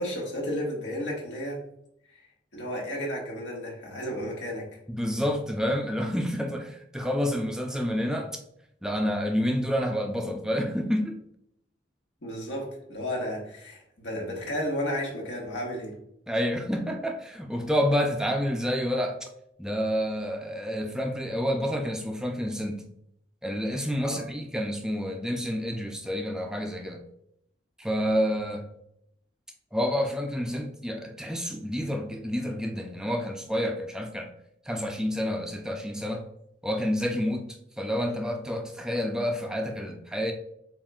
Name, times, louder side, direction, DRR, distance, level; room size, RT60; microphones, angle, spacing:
voice 1, 0.0-1.6 2.5-4.7 12.2-15.9 24.0-24.2, equal, 80° left, -1 dB, 1.3 m, -33 dB
voice 2, 4.9-8.3 8.8-11.2 16.3-19.3 19.6-22.9 23.4-27.0 27.8-28.7 29.7-34.3 34.7-36.3 36.6-40.3, equal, 5° right, 3 dB, 0.3 m, -29 dB
7.1 x 2.4 x 2.3 m, 0.74 s
head